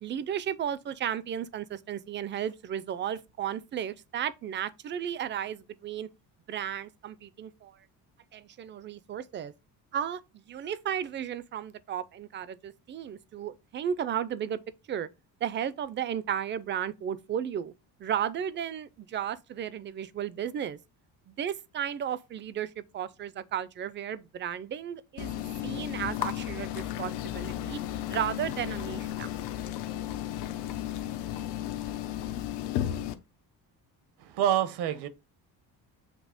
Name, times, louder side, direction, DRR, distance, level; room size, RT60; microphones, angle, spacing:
voice 1, 0.0-6.1 6.5-7.8 8.3-9.5 9.9-14.6 14.9-15.1 15.4-17.7 18.0-20.8 21.3-27.8 28.1-29.3, right 9 dB, 30° right, 0.4 m, -34 dB
sound 1, 25.2-33.1, left 12 dB, 80° left, 0.9 m, -34 dB
sound 2, 26.4-32.9, left 10 dB, 50° left, 0.8 m, -48 dB
voice 2, 34.2-35.1, right 11 dB, 80° right, 1.0 m, -27 dB
7.5 x 3.2 x 4.9 m
cardioid pair, 165°, 40 cm